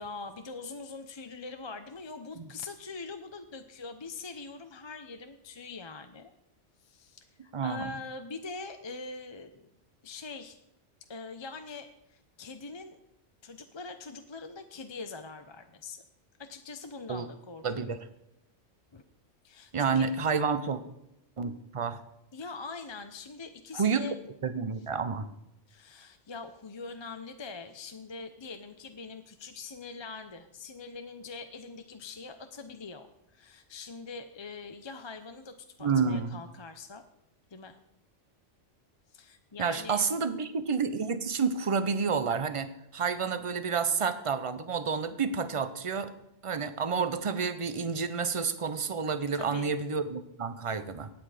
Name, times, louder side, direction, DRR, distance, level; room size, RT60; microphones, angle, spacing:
voice 1, 0.0-6.3 6.8-9.7 10.0-10.6 11.1-13.0 13.4-16.0 16.4-17.9 18.9-19.0 19.4-20.1 22.3-24.1 25.7-37.0 37.5-37.8 39.1-40.2 49.3-49.7, left 4 dB, 30° left, 7 dB, 0.6 m, -43 dB
voice 2, 7.5-7.9 17.1-17.3 17.6-18.0 19.7-20.8 21.4-22.0 23.7-24.0 24.4-25.3 35.8-36.4 39.6-46.1 46.4-51.1, right 5 dB, 30° right, 12 dB, 0.8 m, -29 dB
16.5 x 8.9 x 5.0 m, 0.84 s
omnidirectional pair, 1.2 m